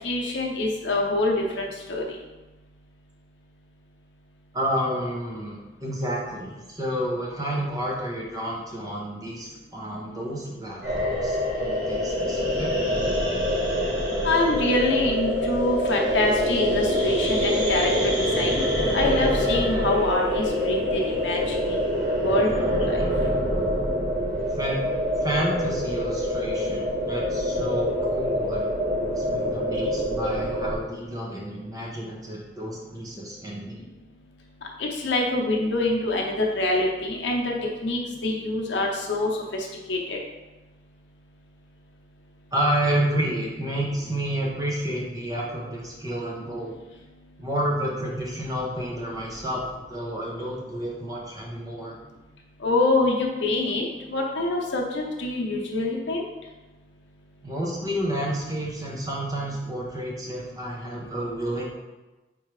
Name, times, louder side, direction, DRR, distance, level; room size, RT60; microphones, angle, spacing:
voice 1, 0.0-2.2 14.2-18.6 18.9-21.8 22.2-22.5 22.9-23.0 34.8-37.5 37.8-40.2 52.6-56.2, left 2 dB, 70° left, -1 dB, 0.8 m, -25 dB
voice 2, 4.5-12.7 24.6-24.8 25.2-33.8 42.5-46.7 47.4-49.6 49.9-52.0 57.4-61.6, right 1 dB, 20° right, -3 dB, 0.7 m, -30 dB
sound 1, 10.8-30.8, equal, 55° right, 1.5 m, -25 dB
4.5 x 3.6 x 3.2 m, 1.1 s
head